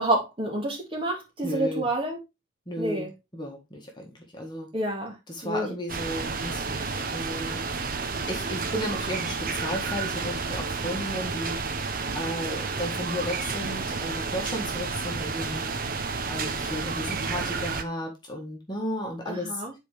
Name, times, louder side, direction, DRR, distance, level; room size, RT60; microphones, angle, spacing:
voice 1, 0.0-2.2 2.8-3.1 4.7-5.2 5.4-5.7 19.3-19.7, right 1 dB, 25° right, 2.0 m, -28 dB
voice 2, 1.4-1.9 2.7-3.1 3.3-4.7 5.3-7.6 8.0-11.7 12.1-15.7 16.3-19.6, equal, 20° left, 1.7 m, -34 dB
sound 1, 5.9-17.8, right 4 dB, 45° right, 0.8 m, -31 dB
8.3 x 4.7 x 3.4 m
head